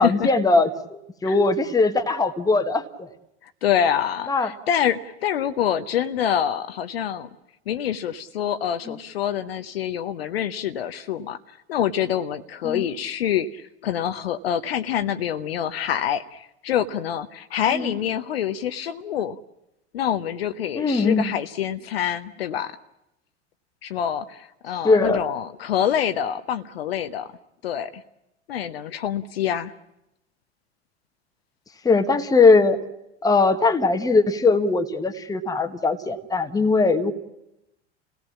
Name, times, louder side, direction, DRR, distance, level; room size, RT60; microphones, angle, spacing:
voice 1, 0.0-3.1 4.3-4.5 8.9-9.0 12.6-12.9 17.7-17.9 20.7-21.3 24.8-25.2 31.8-32.8 33.2-37.1, left 3 dB, 10° left, 7 dB, 1.3 m, -20 dB
voice 2, 3.4-7.3 7.7-19.4 19.9-22.8 23.8-27.3 27.6-28.0 28.5-29.7, left 9 dB, 60° left, 10 dB, 0.9 m, -26 dB
28.0 x 17.5 x 7.3 m, 0.88 s
figure-of-eight pair, 85°, 34 cm